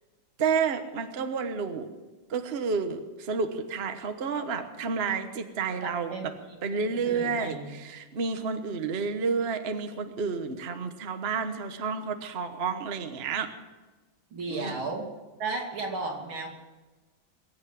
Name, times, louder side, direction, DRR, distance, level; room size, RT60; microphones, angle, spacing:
voice 1, 0.4-1.9 2.3-6.1 6.6-13.5 14.5-14.9, right 5 dB, 40° right, 7 dB, 1.1 m, -30 dB
voice 2, 5.8-6.3 6.7-7.7 14.3-15.1 15.4-16.5, right 3 dB, 85° right, 0 dB, 3.5 m, -34 dB
22.0 x 8.2 x 7.5 m, 1.3 s
omnidirectional pair, 2.2 m